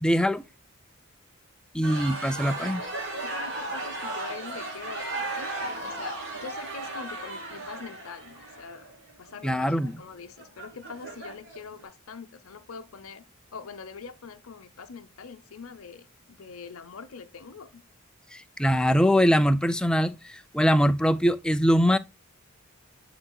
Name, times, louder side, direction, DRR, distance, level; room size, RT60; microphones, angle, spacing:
voice 1, 0.0-0.4 1.7-2.8 9.4-9.9 18.3-22.0, equal, 5° left, 0.3 m, -22 dB
sound 1, 1.8-11.7, right 2 dB, 55° right, 2.5 m, -36 dB
voice 2, 3.2-8.9 9.2-13.2 13.5-17.8, left 5 dB, 75° left, 0.7 m, -43 dB
11.0 x 3.9 x 2.2 m
head